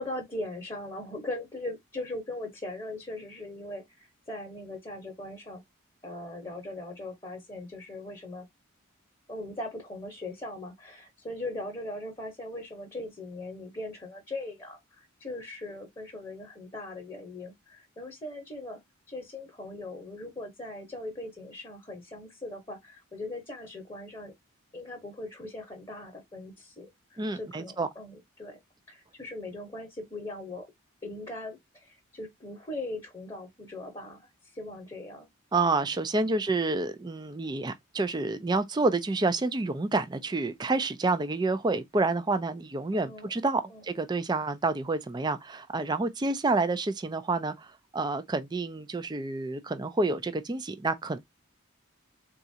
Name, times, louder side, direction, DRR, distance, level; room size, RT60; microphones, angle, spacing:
voice 1, 0.0-5.6 6.0-8.5 9.3-18.8 19.1-24.3 24.7-28.6 28.9-30.7 31.0-35.3 36.2-36.4 42.9-43.3 43.7-43.8, left 2 dB, 20° left, 0.9 m, -40 dB
voice 2, 27.2-27.9 35.5-51.2, right 3 dB, 20° right, 0.4 m, -29 dB
4.0 x 2.4 x 2.7 m
head